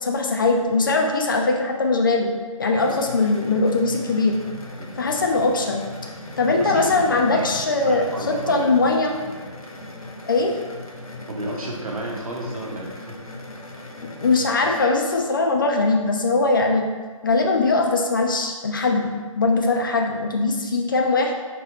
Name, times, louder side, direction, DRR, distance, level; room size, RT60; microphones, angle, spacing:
voice 1, 0.0-2.3 2.6-4.4 5.0-5.8 6.4-9.1 10.3-10.6 14.0-16.8 17.2-21.3, left 3 dB, 35° left, 2 dB, 0.4 m, -21 dB
sound 1, 2.8-14.8, left 2 dB, 85° left, 0.7 m, -39 dB
sound 2, 3.9-9.5, equal, 5° left, 0.7 m, -40 dB
voice 2, 7.8-8.7 11.3-13.1, right 1 dB, 80° right, -2 dB, 1.1 m, -32 dB
4.1 x 3.0 x 2.8 m, 1.5 s
figure-of-eight pair, 150°, 18 cm